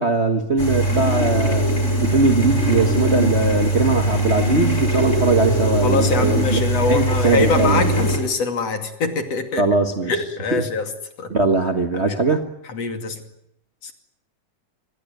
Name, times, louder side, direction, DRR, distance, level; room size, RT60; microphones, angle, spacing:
voice 1, 0.0-1.6 2.0-7.9 9.6-10.1 10.5-10.6 11.3-12.4, right 3 dB, 75° right, 6 dB, 0.6 m, -20 dB
sound 1, 0.6-8.2, right 1 dB, 20° left, 5.5 m, -21 dB
voice 2, 5.8-9.6 10.1-10.9 11.2-11.3 11.9-12.2 12.7-13.2 13.8-13.9, left 4 dB, 50° left, 7 dB, 3.5 m, -23 dB
26.5 x 20.5 x 9.2 m, 0.76 s
omnidirectional pair, 3.7 m